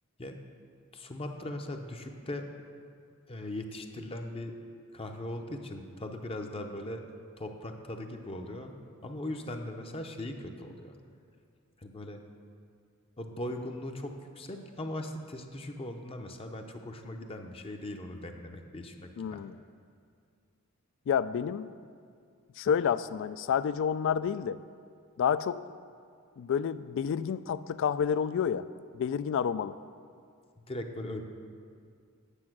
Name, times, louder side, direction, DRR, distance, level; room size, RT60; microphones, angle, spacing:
voice 1, 0.9-2.5 3.3-4.5 4.9-7.0 7.4-8.7 9.0-10.9 11.8-12.2 13.2-19.4 30.7-31.2, left 1 dB, 25° left, 4 dB, 0.7 m, -39 dB
voice 2, 19.2-19.6 21.1-21.7 22.6-24.6 25.2-25.6 26.4-28.7 28.9-29.8, left 7 dB, 60° left, 15 dB, 0.3 m, -29 dB
9.8 x 7.2 x 6.0 m, 2.2 s
head